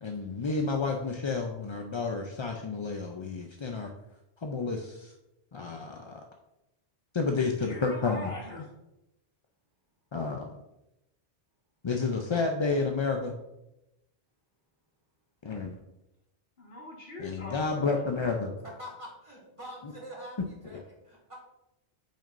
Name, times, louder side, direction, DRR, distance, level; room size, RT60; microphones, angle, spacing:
voice 1, 0.0-3.9 4.4-5.1 5.5-6.2 7.1-8.3 10.1-10.4 11.8-13.4 15.4-15.8 17.2-18.5, left 4 dB, 40° left, 2 dB, 0.4 m, -30 dB
voice 2, 7.6-8.7 16.6-18.1, left 2 dB, 60° left, -1 dB, 1.7 m, -42 dB
voice 3, 18.6-21.4, equal, 30° right, -2 dB, 1.9 m, -45 dB
8.6 x 6.2 x 2.5 m, 0.91 s
omnidirectional pair, 1.2 m